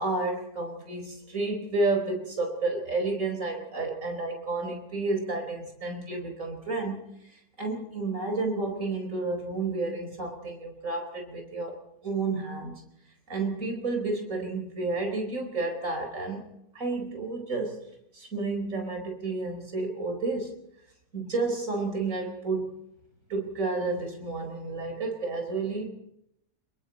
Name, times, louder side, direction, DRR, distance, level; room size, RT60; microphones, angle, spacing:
voice 1, 0.0-11.8 12.0-12.8 13.3-16.4 16.7-17.8 18.1-20.6 21.1-22.8 23.3-25.9, right 3 dB, 55° right, 3 dB, 5.0 m, -31 dB
27.5 x 22.0 x 4.2 m, 0.79 s
omnidirectional pair, 1.6 m